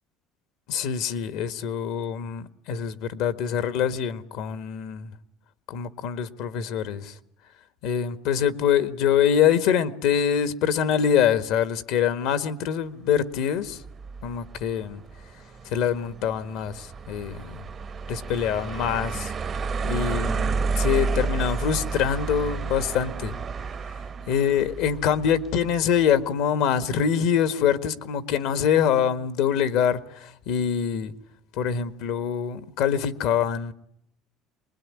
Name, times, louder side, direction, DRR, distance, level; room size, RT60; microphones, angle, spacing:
voice 1, 0.7-5.1 5.7-7.1 7.8-13.8 14.2-15.0 15.6-17.6 18.1-19.3 19.9-23.3 24.3-31.1 31.5-33.7, left 8 dB, 70° left, 1.6 m, -24 dB
sound 1, 13.7-25.9, right 4 dB, 40° right, 1.0 m, -31 dB
24.0 x 21.0 x 9.8 m
hypercardioid pair, 75°, 0 cm